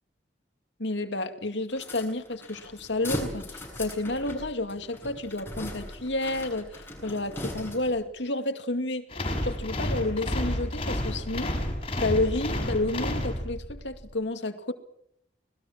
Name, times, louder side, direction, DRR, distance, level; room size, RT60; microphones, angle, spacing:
voice 1, 0.8-9.1 9.4-11.6 12.0-14.7, left 2 dB, 80° left, 2.4 m, -30 dB
sound 1, 1.7-8.1, left 1 dB, 15° left, 7.0 m, -39 dB
sound 2, 9.1-13.8, left 1 dB, 30° left, 6.0 m, -30 dB
26.0 x 20.5 x 7.4 m
head